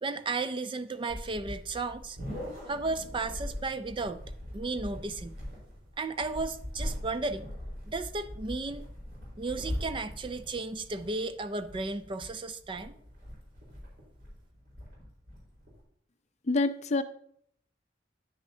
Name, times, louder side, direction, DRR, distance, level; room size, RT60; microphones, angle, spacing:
voice 1, 0.0-2.2 2.7-4.2 4.5-5.4 6.0-7.5 7.9-8.8 9.4-12.9, right 3 dB, 25° right, 11 dB, 0.4 m, -34 dB
sound 1, 1.1-15.8, equal, 60° right, 4.2 m, -41 dB
voice 2, 16.5-17.0, left 3 dB, 40° left, 11 dB, 0.5 m, -26 dB
9.9 x 9.5 x 2.7 m, 0.65 s
head